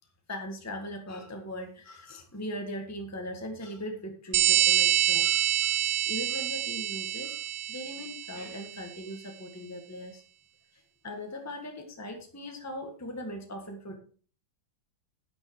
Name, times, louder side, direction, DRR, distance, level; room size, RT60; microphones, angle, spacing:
voice 1, 0.3-7.4 7.7-10.2 10.7-14.0, left 1 dB, 10° left, 3 dB, 1.6 m, -39 dB
sound 1, 4.3-8.6, right 11 dB, 70° right, 0.8 m, -26 dB
10.5 x 9.4 x 4.8 m, 0.41 s
omnidirectional pair, 2.0 m